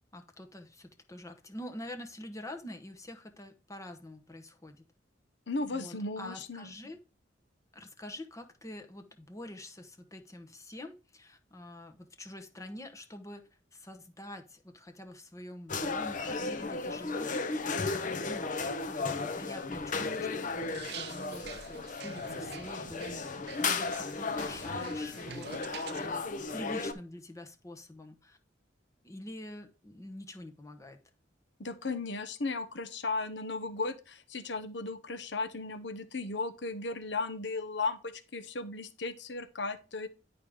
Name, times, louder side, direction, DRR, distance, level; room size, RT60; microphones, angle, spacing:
voice 1, 0.1-4.9 5.7-7.0 7.7-13.4 13.7-18.5 18.8-23.3 23.6-28.4 29.0-31.0, left 1 dB, 15° left, 5 dB, 0.9 m, -46 dB
voice 2, 5.5-6.7 31.6-40.1, left 3 dB, 65° left, 11 dB, 1.0 m, -36 dB
sound 1, 15.7-26.9, left 4 dB, 45° left, 0.8 m, -35 dB
sound 2, 20.6-26.1, right 7 dB, 60° right, 0.5 m, -47 dB
10.5 x 5.0 x 3.6 m, 0.33 s
head